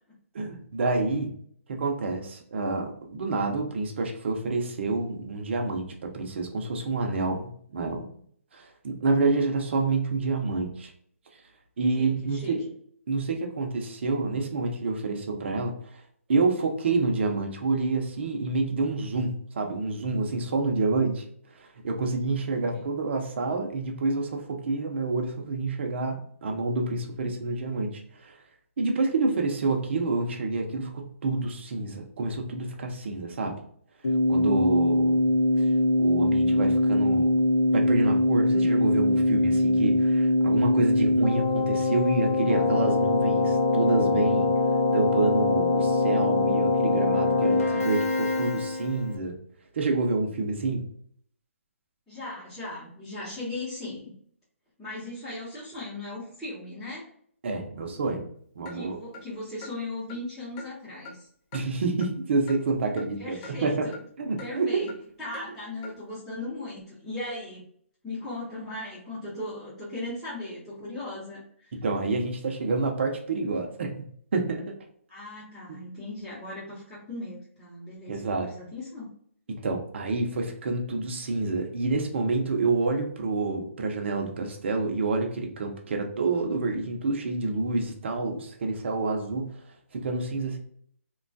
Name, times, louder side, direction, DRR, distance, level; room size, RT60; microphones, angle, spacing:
voice 1, 0.3-1.3 1.7-8.1 8.5-10.9 11.8-12.6 13.1-16.0 16.3-21.2 21.6-28.3 28.8-33.6 34.3-35.2 35.6-35.7 36.0-37.3 37.7-44.5 44.9-49.4 49.7-50.8 57.4-58.3 58.6-59.0 61.5-63.9 64.2-64.9 71.7-73.9 74.3-74.7 78.1-78.5 79.5-89.5 89.9-90.6, right 3 dB, 55° right, 2 dB, 0.7 m, -28 dB
voice 2, 11.9-12.5 22.7-22.8 52.1-54.1 54.8-57.1 58.7-61.3 63.2-64.0 64.4-64.9 65.2-67.6 68.0-71.7 75.1-79.1, left 2 dB, ahead, -15 dB, 0.9 m, -38 dB
Keyboard (musical), 34.0-49.1, left 2 dB, 85° left, 0.8 m, -23 dB
Clock, 58.7-58.8 59.1-59.2 59.6-59.7 60.1-60.2 60.6-60.7 61.0-61.2 61.5-61.6 62.0-62.1 62.5-62.6 63.0-63.1 63.4-63.5 63.9-64.0 64.4-64.5 64.9-65.0 65.3-65.5 65.8-65.9, left 3 dB, 20° left, 0.4 m, -42 dB
3.0 x 2.3 x 2.6 m, 0.62 s
hypercardioid pair, 155°, 8 cm